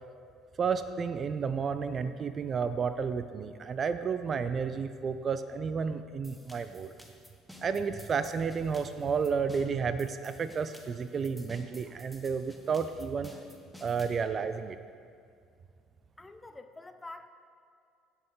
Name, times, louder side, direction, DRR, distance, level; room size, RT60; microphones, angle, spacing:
voice 1, 0.6-6.9 7.6-13.4 13.8-14.8, right 6 dB, 40° right, 11 dB, 0.4 m, -31 dB
sound 1, 6.2-14.2, left 1 dB, ahead, 1.1 m, -53 dB
voice 2, 16.2-17.3, left 2 dB, 15° left, 8 dB, 0.7 m, -46 dB
16.5 x 5.6 x 3.9 m, 2.3 s
figure-of-eight pair, 55°, 0 cm